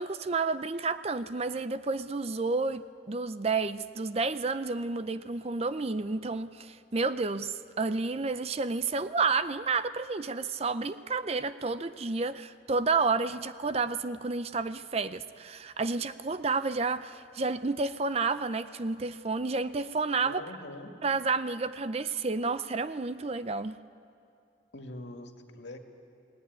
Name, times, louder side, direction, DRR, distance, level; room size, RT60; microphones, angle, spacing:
voice 1, 0.0-20.4 21.0-23.8, right 4 dB, 30° right, 13 dB, 0.5 m, -30 dB
voice 2, 20.2-20.9 24.7-25.8, left 1 dB, 65° left, 4 dB, 2.2 m, -43 dB
28.5 x 18.5 x 9.5 m, 2.5 s
head